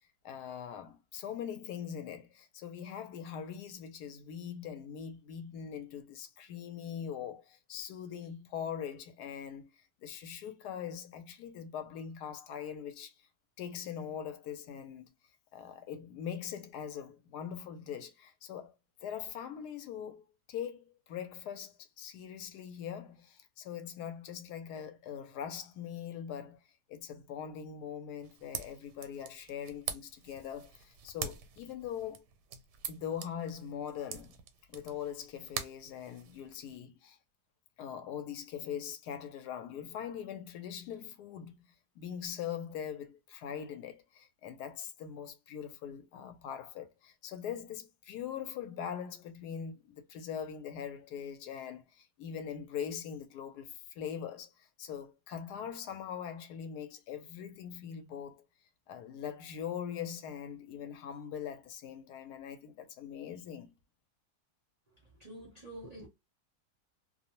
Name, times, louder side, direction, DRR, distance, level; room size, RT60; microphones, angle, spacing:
voice 1, 0.2-13.1 13.6-15.1 15.5-18.7 19.0-20.2 20.5-26.6 26.9-32.2 32.9-34.3 34.7-37.2 37.8-41.7 42.0-58.5 58.9-63.7, left 8 dB, 75° left, 1.1 m, -42 dB
sound 1, 28.2-36.8, right 8 dB, 80° right, 1.2 m, -45 dB
voice 2, 65.2-66.1, right 1 dB, 40° right, 0.6 m, -47 dB
2.7 x 2.0 x 2.8 m
omnidirectional pair, 1.8 m